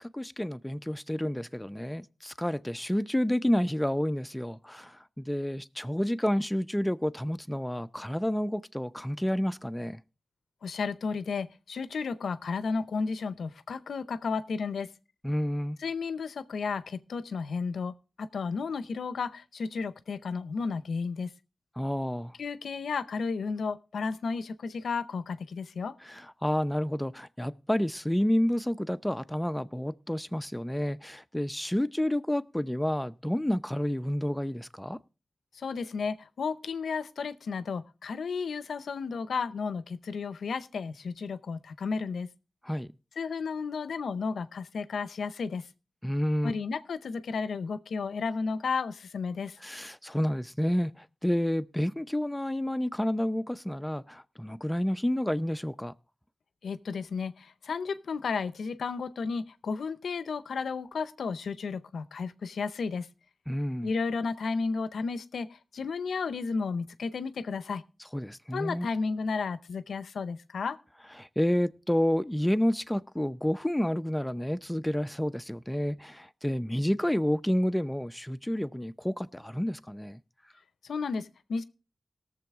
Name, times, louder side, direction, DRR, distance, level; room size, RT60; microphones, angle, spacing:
voice 1, 0.0-10.0 15.2-15.8 21.8-22.4 26.0-35.0 42.6-42.9 46.0-46.5 49.6-55.9 63.5-63.9 68.1-68.9 71.2-80.2, equal, 10° left, 0.6 m, -30 dB
voice 2, 10.6-14.9 15.8-21.3 22.4-25.9 35.6-42.3 43.2-45.7 46.4-49.6 56.6-63.1 63.8-65.5 65.7-67.8 68.5-70.8 80.8-81.6, left 5 dB, 85° left, 0.6 m, -33 dB
18.5 x 7.1 x 3.6 m
cardioid pair, 40°, 0 cm